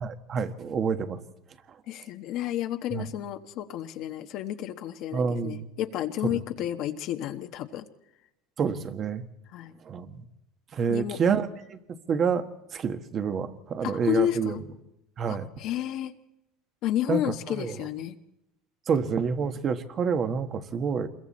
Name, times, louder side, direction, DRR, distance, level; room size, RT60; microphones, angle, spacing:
voice 1, 0.0-1.2 2.9-3.1 5.1-5.7 6.3-6.4 8.6-9.2 9.8-10.2 10.7-11.8 12.1-12.4 12.7-14.6 15.2-15.5 17.1-17.8 18.9-21.1, right 6 dB, 35° right, 8 dB, 1.5 m, -28 dB
voice 2, 1.9-7.9 9.5-9.7 10.9-11.2 13.8-14.6 15.3-16.1 16.8-18.1, left 12 dB, 55° left, 6 dB, 1.1 m, -31 dB
27.0 x 22.0 x 4.3 m, 0.91 s
supercardioid pair, 135°, 0 cm